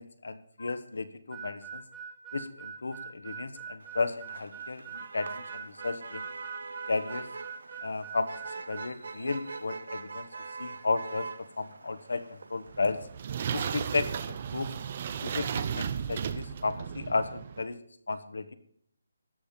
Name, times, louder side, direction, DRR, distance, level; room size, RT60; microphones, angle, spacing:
voice 1, 0.0-1.8 2.3-6.3 6.9-7.3 7.8-8.3 8.7-10.2 10.6-11.3 11.6-13.0 13.5-14.7 15.2-17.8 18.1-18.5, left 3 dB, 75° left, 11 dB, 1.2 m, -33 dB
Harmonica, 1.3-8.9, right 6 dB, 15° right, 1.2 m, -43 dB
Motor vehicle (road), 3.8-14.3, right 4 dB, 70° right, 1.0 m, -43 dB
sound 1, 12.7-17.6, right 7 dB, 35° right, 0.6 m, -35 dB
13.0 x 5.1 x 9.0 m, 0.64 s
hypercardioid pair, 170°, 0 cm